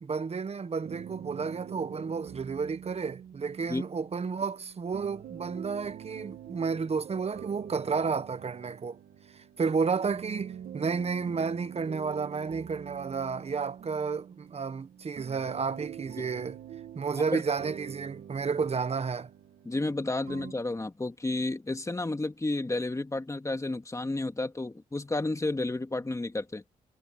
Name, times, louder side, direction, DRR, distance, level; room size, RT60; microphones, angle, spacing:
voice 1, 0.0-9.0 9.3-16.6 16.9-19.3, right 5 dB, 40° right, 1.2 m, -31 dB
sound 1, 0.8-20.5, right 9 dB, 80° right, 1.8 m, -45 dB
voice 2, 19.7-26.6, left 2 dB, 20° left, 2.3 m, -31 dB
cardioid pair, 70°, 16 cm